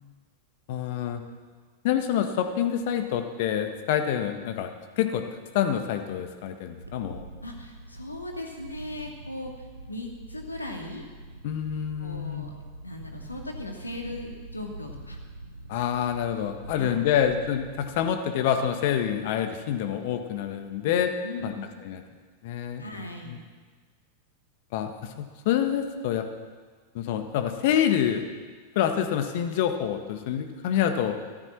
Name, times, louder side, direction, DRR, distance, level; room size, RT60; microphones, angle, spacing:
voice 1, 0.7-1.2 1.8-4.7 5.0-5.2 5.5-7.3 11.4-12.5 15.7-21.1 21.4-21.5 21.8-22.0 22.4-22.8 23.3-23.4 24.7-26.2 26.9-28.2 28.7-31.2, left 9 dB, 50° left, 7 dB, 1.5 m, -27 dB
Wind, 6.8-18.1, right 2 dB, 85° right, 1.2 m, -44 dB
voice 2, 7.4-11.0 12.0-12.5 12.8-15.2 16.7-17.0 21.2-21.7 22.8-23.4, left 1 dB, 80° left, 1 dB, 2.3 m, -38 dB
14.5 x 13.0 x 6.0 m, 1.5 s
figure-of-eight pair, 90°, 0 cm